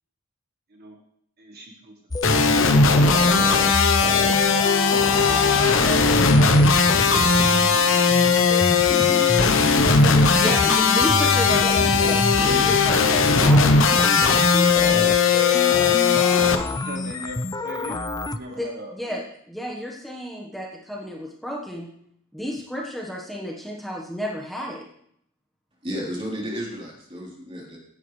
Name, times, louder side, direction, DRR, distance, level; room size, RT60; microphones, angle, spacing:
voice 1, 1.4-1.9 8.6-9.1 9.6-10.5 16.8-18.0 18.2-19.2, right 1 dB, 50° right, 1 dB, 1.4 m, -41 dB
sound 1, 2.1-18.4, left 2 dB, 20° left, 0.5 m, -29 dB
sound 2, 2.2-16.6, left 4 dB, 65° left, 1.0 m, -18 dB
voice 2, 10.3-13.9 18.5-21.9 22.3-24.8, equal, ahead, -2 dB, 1.3 m, -32 dB
voice 3, 25.8-27.8, equal, 25° right, -3 dB, 3.8 m, -32 dB
17.0 x 10.5 x 3.3 m, 0.70 s
head